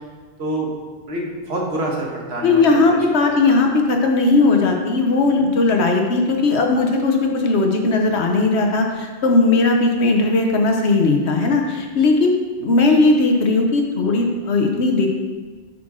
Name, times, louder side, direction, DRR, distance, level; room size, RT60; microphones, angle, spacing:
voice 1, 0.4-0.7 1.1-3.0 3.4-3.5, right 1 dB, 65° right, -2 dB, 1.6 m, -26 dB
voice 2, 2.4-15.1, left 3 dB, 70° left, 2 dB, 1.2 m, -17 dB
8.0 x 6.0 x 3.7 m, 1.4 s
omnidirectional pair, 1.2 m